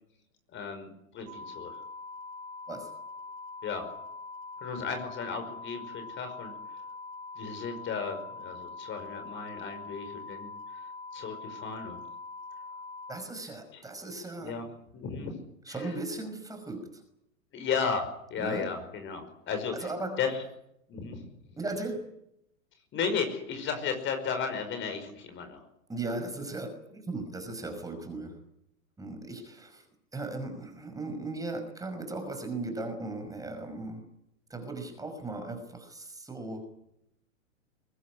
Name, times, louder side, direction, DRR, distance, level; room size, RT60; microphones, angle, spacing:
voice 1, 0.5-1.8 3.6-3.9 4.6-6.5 7.4-10.5 11.1-12.0 13.7-13.8 14.4-14.7 14.9-15.3 15.7-16.0 17.5-19.9 20.2-20.4 20.9-21.3 22.9-25.6, left 6 dB, 25° left, 7 dB, 5.4 m, -34 dB
sound 1, 1.3-13.1, left 3 dB, 35° right, 7.9 m, -43 dB
voice 2, 13.1-14.6 15.7-17.0 18.4-18.7 19.7-20.2 21.6-22.1 25.9-28.4 29.0-29.8 30.1-34.1 34.5-36.7, right 2 dB, 10° right, 6 dB, 5.5 m, -37 dB
23.0 x 20.5 x 9.8 m, 0.79 s
figure-of-eight pair, 110°, 42 cm